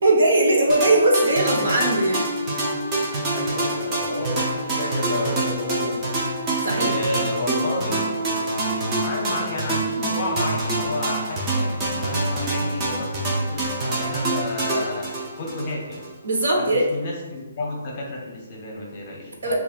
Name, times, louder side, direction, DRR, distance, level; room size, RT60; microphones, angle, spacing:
voice 1, 0.0-2.2 6.6-6.9 16.2-16.9 19.4-19.5, right 2 dB, 65° right, -1 dB, 1.0 m, -19 dB
sound 1, 0.7-16.1, right 2 dB, 15° right, 0.5 m, -26 dB
voice 2, 3.3-6.1 6.6-8.0 9.0-15.1 15.4-16.0 16.6-19.5, left 2 dB, 30° left, -2 dB, 0.7 m, -31 dB
5.5 x 2.3 x 2.4 m, 1.2 s
hypercardioid pair, 165°, 0 cm